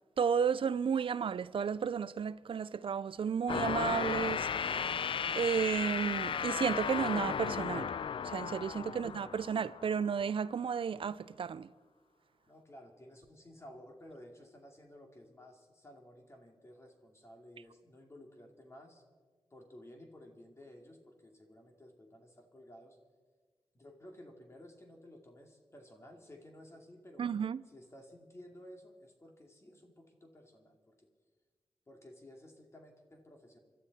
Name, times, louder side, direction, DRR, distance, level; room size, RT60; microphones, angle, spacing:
voice 1, 0.2-5.0 5.3-7.9 8.2-11.7 27.2-27.6, right 7 dB, 65° right, 0.4 m, -33 dB
sound 1, 3.5-10.1, left 7 dB, 65° left, 0.4 m, -35 dB
voice 2, 12.5-19.0 19.5-23.0 23.7-27.3 27.7-31.1 31.9-33.6, left 1 dB, 30° left, 2.5 m, -55 dB
26.0 x 12.5 x 4.2 m
wide cardioid pair, 85°, 10 cm